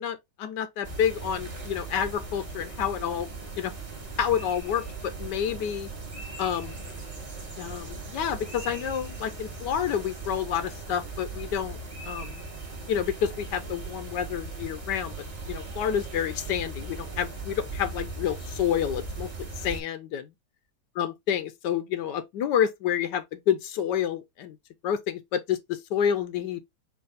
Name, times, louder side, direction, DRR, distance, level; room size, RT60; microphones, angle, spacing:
voice 1, 0.0-3.3 3.6-3.7 4.2-5.9 6.4-6.8 7.6-11.8 12.1-12.4 12.9-15.1 15.5-20.3 21.0-24.6 24.8-26.6, left 9 dB, 85° left, 1.2 m, -29 dB
sound 1, 0.8-19.8, right 3 dB, 20° right, 1.2 m, -38 dB
4.7 x 2.7 x 3.9 m
omnidirectional pair, 1.8 m